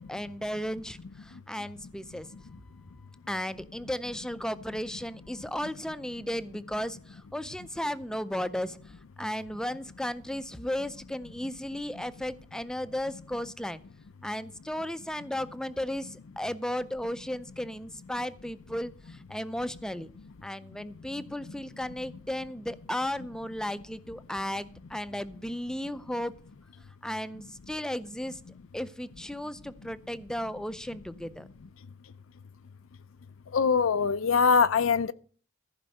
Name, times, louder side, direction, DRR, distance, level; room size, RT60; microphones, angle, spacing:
voice 1, 0.1-2.5 3.3-13.8 14.2-20.1 20.4-26.3 27.0-28.4 28.7-31.5, left 1 dB, 5° left, 0.4 m, -35 dB
voice 2, 33.5-35.1, left 5 dB, 80° left, 0.5 m, -23 dB
14.5 x 5.2 x 7.7 m
head